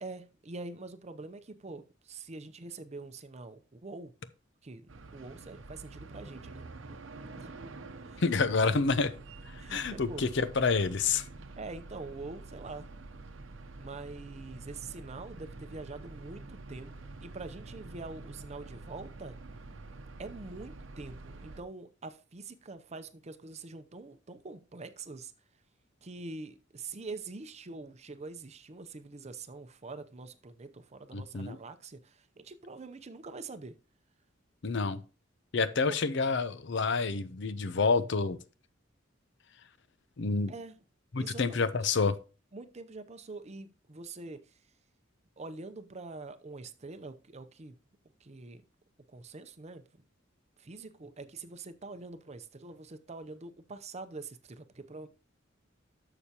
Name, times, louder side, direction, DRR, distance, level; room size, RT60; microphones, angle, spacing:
voice 1, 0.0-4.1 4.6-7.0 7.4-7.5 8.0-8.2 8.6-8.8 9.6-10.2 11.6-12.9 13.8-19.4 20.2-25.3 26.0-33.7 35.9-36.0 40.5-40.7 41.2-41.7 42.5-44.4 45.4-47.7 48.2-48.6 49.1-49.8 50.6-55.1, right 3 dB, 35° right, 0.6 m, -45 dB
sound 1, 4.9-21.6, right 3 dB, 75° right, 0.8 m, -47 dB
voice 2, 8.2-9.1 9.5-11.2 31.1-31.6 34.6-35.0 35.5-38.4 40.2-40.5 41.1-42.2, left 4 dB, 65° left, 0.7 m, -28 dB
11.5 x 6.9 x 2.9 m
head